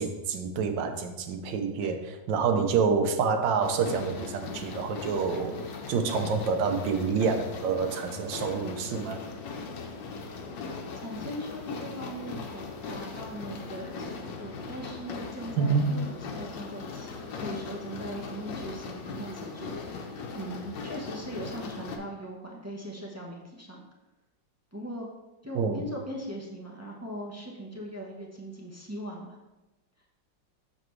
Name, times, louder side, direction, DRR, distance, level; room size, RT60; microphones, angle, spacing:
voice 1, 0.0-2.0 2.3-5.6 5.9-9.2 15.6-16.0 25.5-25.8, right 5 dB, 80° right, 7 dB, 1.4 m, -27 dB
sound 1, 3.6-22.0, left 4 dB, 80° left, 1.5 m, -39 dB
voice 2, 11.0-19.7 20.3-23.8 24.7-25.1 25.4-29.4, equal, 15° right, -3 dB, 0.5 m, -40 dB
6.7 x 6.5 x 3.2 m, 1.1 s
omnidirectional pair, 2.0 m